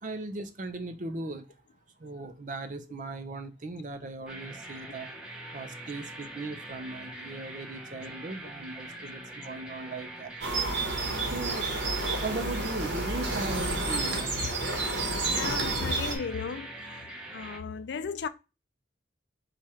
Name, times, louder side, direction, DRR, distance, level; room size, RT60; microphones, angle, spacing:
voice 1, 0.0-1.5 2.0-5.1 5.5-10.3 11.3-11.7 12.2-14.5, right 2 dB, 45° right, 0.6 m, -38 dB
sound 1, 4.3-17.6, right 1 dB, 5° right, 0.7 m, -43 dB
sound 2, 10.4-16.2, right 2 dB, 80° right, 1.3 m, -30 dB
voice 2, 15.3-16.7 17.3-18.3, left 5 dB, 75° left, 0.4 m, -35 dB
4.8 x 2.4 x 4.2 m
head